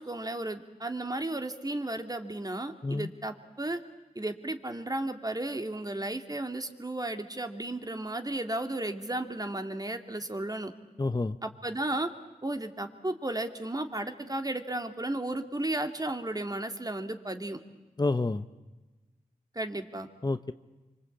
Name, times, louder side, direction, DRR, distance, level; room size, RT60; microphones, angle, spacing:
voice 1, 0.0-3.8 4.2-10.7 11.4-12.1 12.4-17.6 19.5-20.1, right 1 dB, 25° right, 6 dB, 2.4 m, -34 dB
voice 2, 11.0-11.4 18.0-18.5 20.2-20.5, left 3 dB, 25° left, 11 dB, 0.9 m, -28 dB
25.5 x 25.0 x 8.6 m, 1.2 s
cardioid pair, 50°, 15 cm